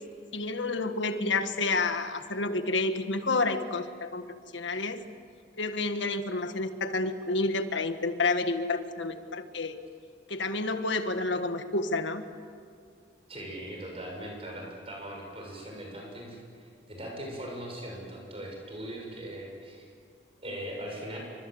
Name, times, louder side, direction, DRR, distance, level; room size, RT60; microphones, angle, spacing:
voice 1, 0.3-4.2 4.5-5.0 5.6-9.8 10.3-12.2, left 3 dB, 80° left, 9 dB, 1.6 m, -29 dB
voice 2, 13.3-19.9 20.4-21.2, right 1 dB, 30° right, 0 dB, 7.0 m, -40 dB
29.0 x 25.0 x 7.9 m, 2.3 s
head